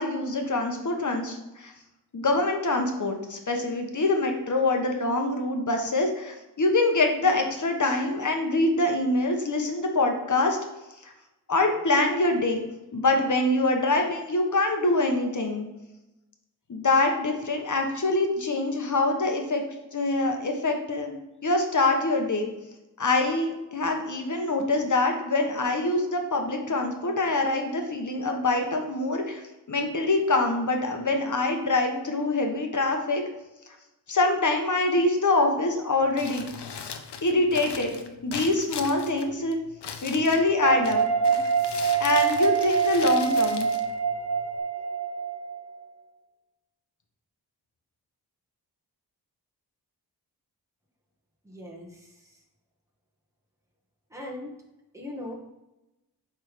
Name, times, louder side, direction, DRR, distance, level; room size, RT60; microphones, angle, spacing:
voice 1, 0.0-1.7 2.1-10.6 11.0-11.1 11.5-12.6 12.9-15.7 16.7-19.6 19.9-21.1 21.4-22.5 23.0-29.4 29.7-33.2 34.1-36.5 37.2-39.6 40.0-41.0 41.3-41.4 42.0-43.7, left 2 dB, 45° left, 3 dB, 1.2 m, -25 dB
Crumpling crinkling, 36.0-44.6, left 6 dB, 80° left, 0.8 m, -40 dB
sound 1, 40.6-45.8, right 6 dB, 45° right, 0.6 m, -25 dB
voice 2, 51.4-52.4 54.1-54.6 54.9-55.3, left 1 dB, 5° right, -2 dB, 1.8 m, -40 dB
7.7 x 3.7 x 5.0 m, 0.99 s
wide cardioid pair, 75°, 40 cm